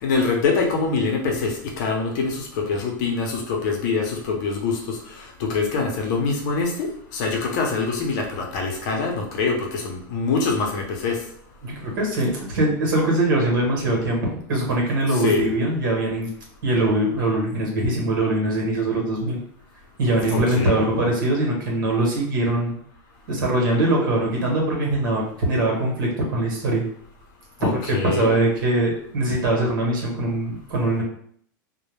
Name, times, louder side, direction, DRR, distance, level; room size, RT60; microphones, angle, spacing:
voice 1, 0.0-11.2 15.1-15.5 20.3-20.8 27.6-28.3, left 4 dB, 60° left, 1 dB, 0.7 m, -24 dB
voice 2, 11.6-16.3 16.6-19.4 20.0-22.8 23.3-26.8 27.6-31.0, right 1 dB, 85° right, -1 dB, 1.0 m, -22 dB
2.1 x 2.1 x 3.1 m, 0.64 s
supercardioid pair, 135°, 11 cm